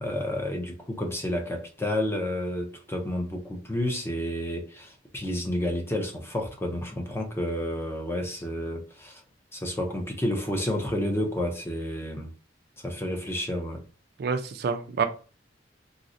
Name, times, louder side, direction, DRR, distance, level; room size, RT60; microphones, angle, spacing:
voice 1, 0.0-9.2 9.5-12.3 12.8-13.8, left 1 dB, 15° left, 0.5 m, -30 dB
voice 2, 14.2-15.0, right 5 dB, 55° right, 0.3 m, -27 dB
3.9 x 2.0 x 2.5 m
head